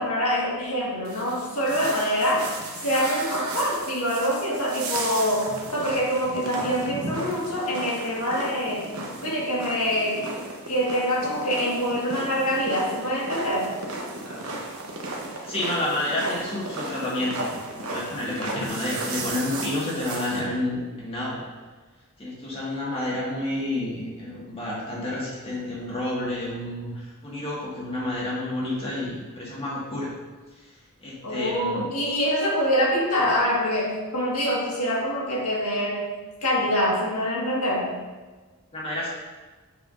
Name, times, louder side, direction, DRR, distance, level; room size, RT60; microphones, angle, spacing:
voice 1, 0.0-2.4 2.8-8.8 9.2-10.2 10.7-13.7 31.2-36.0 36.4-37.9, equal, 80° left, -4 dB, 1.7 m, -25 dB
sound 1, 1.0-20.4, right 2 dB, 70° right, 1.0 m, -35 dB
voice 2, 15.5-17.5 17.7-21.4 22.2-30.1 31.0-31.9 38.7-39.1, left 1 dB, 25° left, -6 dB, 1.7 m, -30 dB
6.8 x 5.7 x 2.6 m, 1.3 s
head